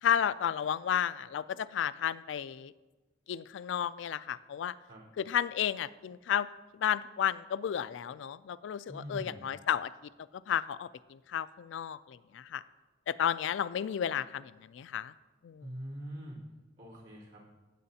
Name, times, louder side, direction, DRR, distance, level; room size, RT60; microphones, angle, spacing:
voice 1, 0.0-2.7 3.3-4.7 5.2-6.5 6.7-9.9 10.5-12.6 13.1-15.1 15.4-15.7, left 9 dB, 80° left, 16 dB, 0.3 m, -32 dB
voice 2, 8.9-9.5 15.6-16.4 16.8-17.5, right 1 dB, 80° right, -6 dB, 3.5 m, -43 dB
16.5 x 7.7 x 2.8 m, 1.2 s
head